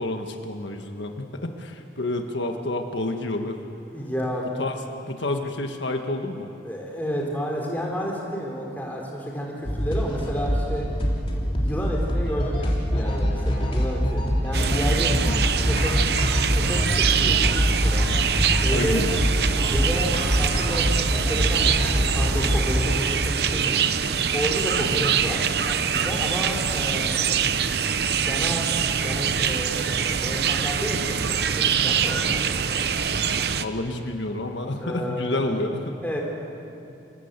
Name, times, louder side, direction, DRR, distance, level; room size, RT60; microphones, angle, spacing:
voice 1, 0.0-3.6 4.6-6.5 15.1-15.4 18.7-19.1 24.8-25.1 33.4-36.0, left 2 dB, 75° left, 4 dB, 1.6 m, -29 dB
voice 2, 3.9-4.5 6.6-10.9 11.6-15.2 15.6-15.9 16.5-18.1 18.6-19.0 19.7-23.8 24.3-33.0 34.8-35.5 36.0-36.2, equal, 10° left, -2 dB, 3.8 m, -31 dB
sound 1, 9.6-22.9, equal, 30° left, 3.2 m, -24 dB
sound 2, 14.5-33.6, right 7 dB, 60° right, 0.7 m, -24 dB
26.5 x 16.5 x 8.2 m, 2.8 s
head